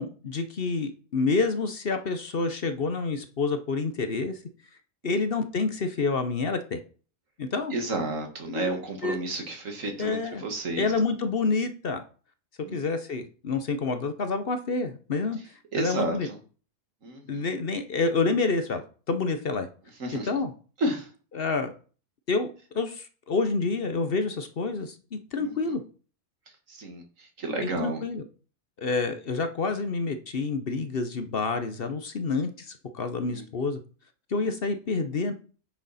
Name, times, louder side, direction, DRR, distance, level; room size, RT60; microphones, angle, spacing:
voice 1, 0.0-4.4 5.0-6.8 7.4-7.7 8.5-9.2 10.0-10.4 10.8-12.0 12.7-15.4 15.8-16.3 17.3-19.7 20.3-20.5 21.3-21.7 22.3-25.8 27.6-28.2 28.8-33.8 34.3-35.3, left 4 dB, 50° left, 8 dB, 1.0 m, -28 dB
voice 2, 7.7-10.9 12.6-12.8 15.7-16.4 17.0-17.5 20.0-20.3 20.8-21.1 25.4-25.5 26.7-28.0 33.3-33.4 34.4-34.5, right 2 dB, 85° right, 4 dB, 2.2 m, -32 dB
9.5 x 6.4 x 4.1 m, 0.39 s
omnidirectional pair, 1.3 m